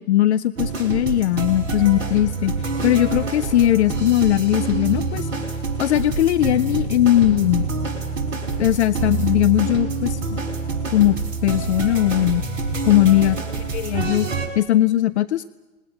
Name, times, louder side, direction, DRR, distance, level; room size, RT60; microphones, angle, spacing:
voice 1, 0.0-2.5 2.8-5.3 5.8-7.7 8.6-10.2 10.9-11.2 11.4-12.4 12.9-13.4 13.7-14.3 14.6-15.5, left 13 dB, 55° left, 14 dB, 0.9 m, -19 dB
sound 1, 0.6-14.5, right 4 dB, 60° right, 4.4 m, -26 dB
26.0 x 20.0 x 9.9 m, 1.1 s
figure-of-eight pair, 95°, 40 cm